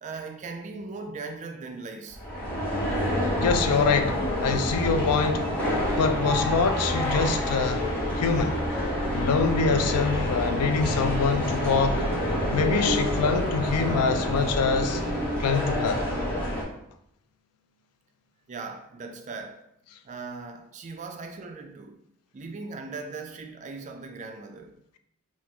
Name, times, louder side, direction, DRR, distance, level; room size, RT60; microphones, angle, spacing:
voice 1, 0.0-2.2 7.4-7.8 9.2-9.4 18.5-19.6 20.0-22.0 22.3-24.7, right 4 dB, 35° right, 0.3 m, -39 dB
sound 1, 2.1-16.6, equal, 5° left, 0.8 m, -27 dB
voice 2, 3.4-7.9 8.2-8.6 9.1-12.0 12.5-15.0 15.4-16.1, left 5 dB, 85° left, 0.4 m, -25 dB
2.9 x 2.4 x 3.5 m
head